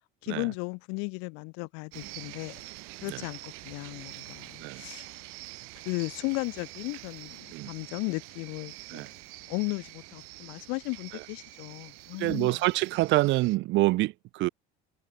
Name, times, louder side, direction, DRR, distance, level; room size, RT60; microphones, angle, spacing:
voice 1, 0.2-2.6 3.0-5.1 5.9-9.1 9.5-12.6, left 32 dB, 85° left, 0.5 m, -35 dB
sound 1, 1.9-13.6, right 31 dB, 90° right, 3.0 m, -46 dB
voice 2, 12.2-14.5, right 19 dB, 60° right, 0.9 m, -27 dB
cardioid pair, 150°, 21 cm